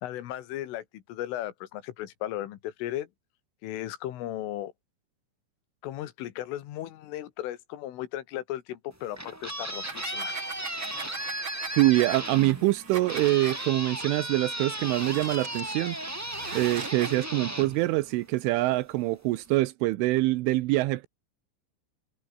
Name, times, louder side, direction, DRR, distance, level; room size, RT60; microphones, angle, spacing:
voice 1, 0.0-3.1 3.6-4.7 5.8-10.4, left 13 dB, 85° left, 4.3 m, -36 dB
sound 1, 8.9-18.6, right 1 dB, 5° right, 1.3 m, -36 dB
sound 2, 9.6-13.7 14.5-17.3, right 6 dB, 35° right, 2.1 m, -41 dB
voice 2, 11.8-16.0 16.5-21.1, right 19 dB, 85° right, 3.3 m, -25 dB
omnidirectional pair, 5.6 m